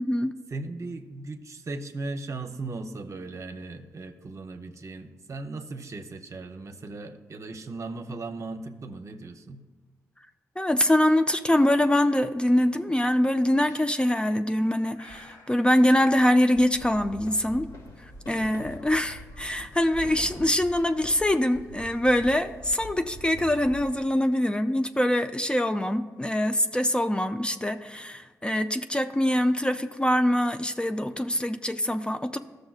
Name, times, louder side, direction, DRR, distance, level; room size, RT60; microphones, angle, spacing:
voice 1, 0.0-0.3 10.6-17.7 18.0-32.4, left 1 dB, 15° left, 8 dB, 0.4 m, -24 dB
voice 2, 0.5-9.6, right 3 dB, 50° right, 7 dB, 0.7 m, -37 dB
Breathing, 13.6-14.2 14.9-15.5, left 1 dB, 55° left, 2.6 m, -51 dB
sound 1, 16.6-23.9, equal, 75° left, 2.2 m, -44 dB
14.0 x 6.5 x 2.4 m, 1.3 s
supercardioid pair, 45°, 7 cm